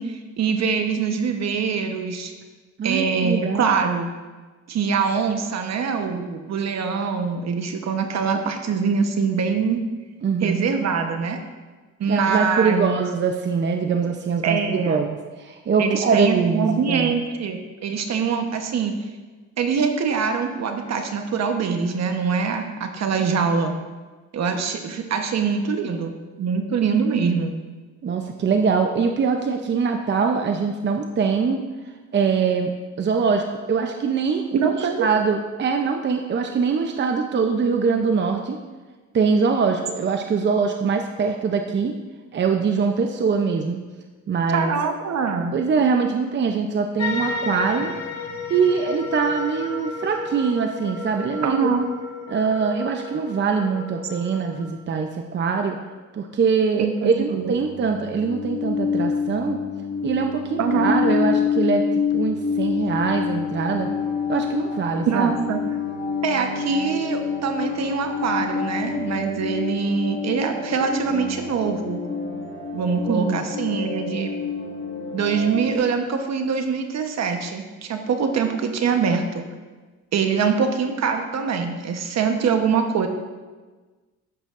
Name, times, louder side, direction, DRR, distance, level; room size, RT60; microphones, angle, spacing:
voice 1, 0.0-2.3 2.8-4.1 4.7-9.8 10.4-11.4 12.0-13.0 14.4-15.0 15.8-18.9 19.6-23.8 24.3-26.1 26.4-27.5 34.5-35.1 44.5-45.5 51.4-51.9 56.8-57.5 60.6-60.9 65.1-65.6 66.2-72.0 72.7-74.3 75.1-79.4 80.1-83.1, right 5 dB, 60° right, 5 dB, 1.1 m, -23 dB
voice 2, 2.8-3.8 10.2-10.6 12.1-17.2 26.0-26.1 28.0-31.6 32.1-32.7 33.0-38.6 39.1-41.9 42.3-43.8 44.3-44.7 45.5-47.9 48.5-51.7 52.3-55.8 56.1-59.6 60.0-61.8 62.1-63.9 64.3-65.3 73.1-73.5, right 5 dB, 40° right, 4 dB, 0.6 m, -23 dB
sound 1, 47.0-54.6, left 4 dB, 60° left, 1.2 m, -32 dB
sound 2, 57.0-75.8, left 6 dB, 40° left, 1.5 m, -27 dB
12.0 x 8.1 x 2.5 m, 1.3 s
cardioid pair, 90°, 30 cm